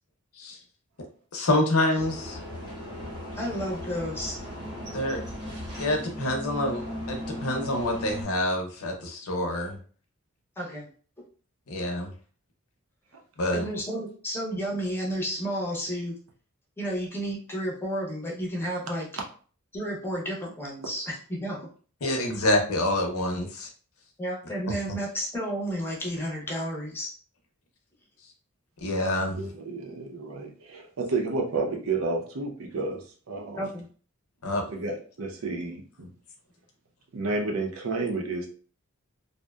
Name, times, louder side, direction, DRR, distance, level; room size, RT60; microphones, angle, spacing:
voice 1, 1.3-2.4 4.9-5.2 5.8-9.8 11.7-12.1 13.4-13.6 22.0-23.7 28.8-29.4 34.4-34.6, left 1 dB, 85° left, 3 dB, 0.6 m, -27 dB
sound 1, 1.9-8.2, equal, 20° right, 0.8 m, -37 dB
voice 2, 3.4-4.4 10.6-10.9 13.5-16.1 16.8-19.1 19.7-21.7 24.2-27.1 33.6-33.9, equal, 10° left, -3 dB, 0.6 m, -32 dB
voice 3, 29.3-33.7 34.7-36.1 37.1-38.5, right 3 dB, 70° right, 1 dB, 0.6 m, -31 dB
2.6 x 2.1 x 2.2 m, 0.42 s
head